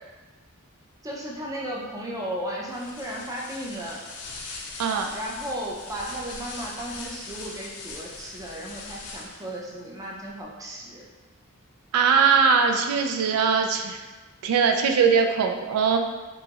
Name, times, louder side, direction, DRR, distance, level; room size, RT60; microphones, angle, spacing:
voice 1, 1.0-4.0 5.1-11.0, equal, 15° right, -3 dB, 0.4 m, -35 dB
sound 1, 2.7-9.6, left 3 dB, 75° left, 0.5 m, -40 dB
voice 2, 11.9-14.0 14.4-16.0, right 6 dB, 85° right, 4 dB, 0.3 m, -21 dB
2.9 x 2.3 x 2.8 m, 1.2 s
head